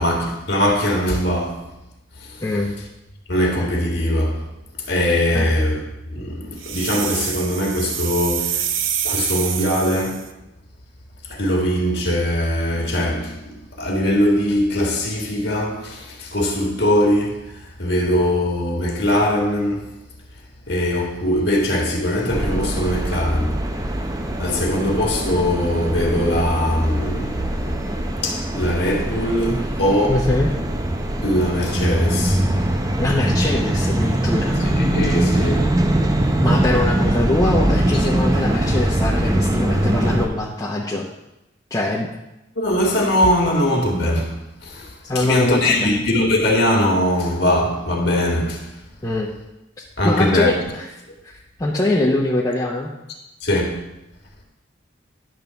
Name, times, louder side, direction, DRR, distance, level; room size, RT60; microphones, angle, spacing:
voice 1, 0.0-1.6 2.2-2.4 3.3-4.4 4.9-5.8 6.1-8.7 9.0-10.2 11.3-19.8 20.7-23.5 24.4-27.9 28.2-30.2 31.2-32.4 34.7-35.7 42.6-44.3 44.6-48.7 50.0-50.5 53.4-53.8, left 1 dB, 60° left, 1.7 m, -21 dB
voice 2, 2.4-2.7 5.3-5.5 30.1-30.5 33.0-34.6 36.4-41.1 41.7-42.1 45.0-45.9 49.0-49.3 49.8-50.9 51.2-52.9, left 2 dB, 20° left, 0.8 m, -23 dB
sound 1, 6.6-10.3, right 9 dB, 90° right, 0.6 m, -26 dB
sound 2, 22.3-40.3, right 1 dB, 20° right, 0.6 m, -22 dB
10.5 x 3.8 x 6.8 m
head